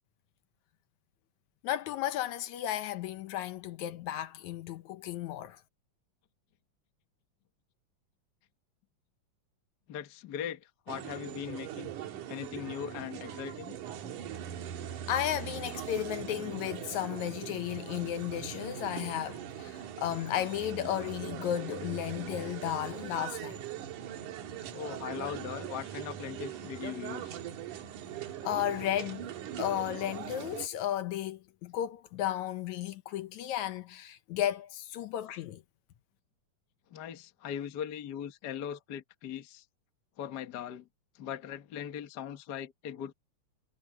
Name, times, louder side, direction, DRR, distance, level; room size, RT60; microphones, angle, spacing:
voice 1, 1.6-5.6 15.1-23.6 28.4-29.3 29.6-35.6, left 12 dB, 75° left, 2.1 m, -34 dB
voice 2, 9.9-11.9 12.3-13.8 24.7-27.4 36.9-39.6 40.2-40.9 41.1-43.1, left 9 dB, 50° left, 1.2 m, -40 dB
sound 1, 10.9-30.7, right 10 dB, 80° right, 2.9 m, -41 dB
omnidirectional pair, 3.6 m